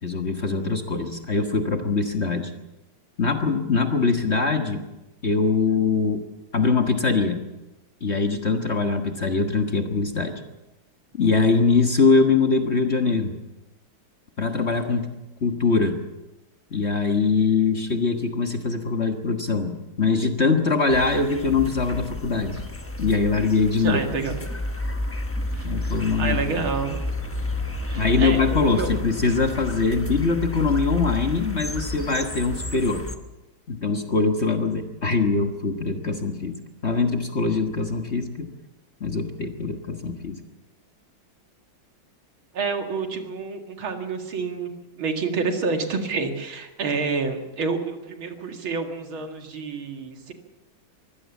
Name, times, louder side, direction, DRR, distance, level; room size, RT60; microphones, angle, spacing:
voice 1, 0.0-2.5 3.2-4.8 5.2-6.2 6.5-7.4 8.0-10.4 11.2-13.3 14.4-15.1 15.4-16.0 16.7-22.6 23.0-24.0 25.6-26.7 27.9-33.0 33.7-38.5 39.0-40.4, left 4 dB, 35° left, 5 dB, 1.5 m, -23 dB
sound 1, 20.9-33.2, left 2 dB, 10° left, 0.7 m, -31 dB
voice 2, 23.8-24.4 25.5-27.0 27.9-29.0 42.5-44.7 45.0-50.3, right 4 dB, 75° right, 5 dB, 2.8 m, -28 dB
23.5 x 16.0 x 7.2 m, 1.0 s
omnidirectional pair, 2.3 m